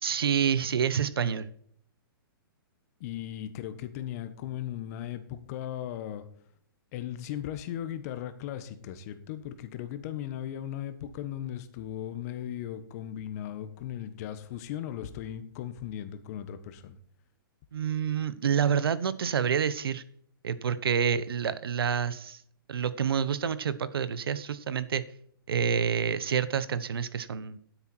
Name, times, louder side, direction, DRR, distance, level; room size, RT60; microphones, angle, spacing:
voice 1, 0.0-1.5 17.7-20.0 20.4-22.4 22.7-25.0 25.5-27.6, right 7 dB, 85° right, 15 dB, 0.9 m, -28 dB
voice 2, 3.0-6.2 6.9-17.0, left 11 dB, 45° left, 11 dB, 1.3 m, -37 dB
10.0 x 8.1 x 4.4 m, 0.62 s
hypercardioid pair, 145°, 12 cm